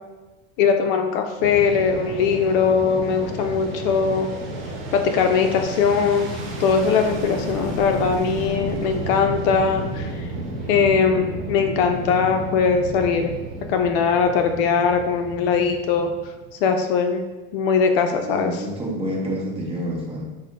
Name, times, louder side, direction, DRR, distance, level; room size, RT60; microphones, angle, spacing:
voice 1, 0.6-4.3 4.9-6.3 6.6-10.3 10.7-13.3 13.7-16.1 16.6-17.3 17.5-18.5, left 6 dB, 60° left, 5 dB, 0.5 m, -20 dB
Fixed-wing aircraft airplane, 1.4-16.6, right 1 dB, 40° right, 0.9 m, -32 dB
voice 2, 18.2-20.3, equal, 20° right, -3 dB, 0.7 m, -28 dB
6.2 x 2.1 x 2.5 m, 1.2 s
supercardioid pair, 150°, 32 cm